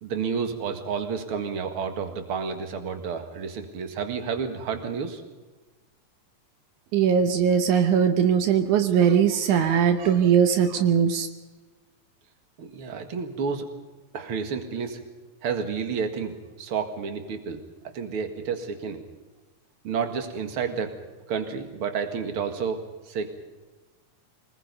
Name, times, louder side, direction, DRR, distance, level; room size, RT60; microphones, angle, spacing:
voice 1, 0.0-5.2 12.6-13.7 14.1-15.0 15.4-17.6 17.9-19.0 19.8-21.0 21.3-22.8 23.1-23.3, right 6 dB, 50° right, 6 dB, 2.5 m, -30 dB
voice 2, 6.9-11.3, right 8 dB, 80° right, 8 dB, 2.5 m, -20 dB
24.5 x 20.0 x 5.4 m, 1.2 s
omnidirectional pair, 3.5 m